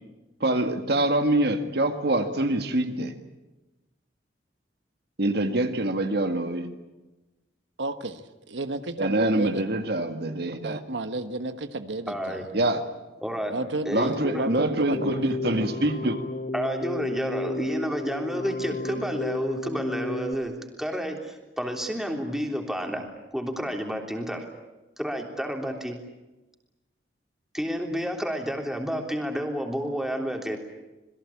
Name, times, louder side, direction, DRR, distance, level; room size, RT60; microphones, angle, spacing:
voice 1, 0.4-3.1 5.2-6.7 9.0-10.8 12.5-12.8 13.9-16.2, right 1 dB, 60° right, 7 dB, 2.0 m, -25 dB
voice 2, 7.8-9.6 10.6-12.4 13.5-15.1, right 2 dB, 90° right, 9 dB, 1.3 m, -32 dB
voice 3, 12.1-12.4 13.2-13.5 13.8-14.6 16.5-24.4 25.0-26.0 27.5-30.6, equal, ahead, 2 dB, 3.4 m, -30 dB
Keyboard (musical), 14.9-20.3, left 2 dB, 40° left, 1.3 m, -32 dB
27.0 x 21.5 x 8.6 m, 1.1 s
head